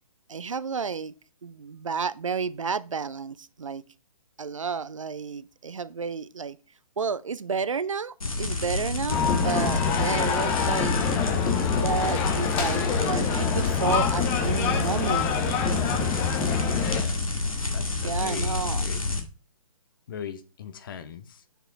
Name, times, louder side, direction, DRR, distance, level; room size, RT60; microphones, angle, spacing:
voice 1, 0.3-1.1 1.4-3.8 4.4-6.6 7.0-11.0 11.7-15.3 18.0-18.8, right 5 dB, 65° right, 0.5 m, -31 dB
sound 1, 8.2-19.2, left 2 dB, 70° left, 1.9 m, -29 dB
sound 2, 9.1-17.0, left 6 dB, 10° left, 0.4 m, -26 dB
voice 2, 16.5-17.3 17.7-19.0 20.1-21.4, left 8 dB, 35° left, 0.8 m, -40 dB
6.7 x 4.9 x 4.4 m
figure-of-eight pair, 130°, 18 cm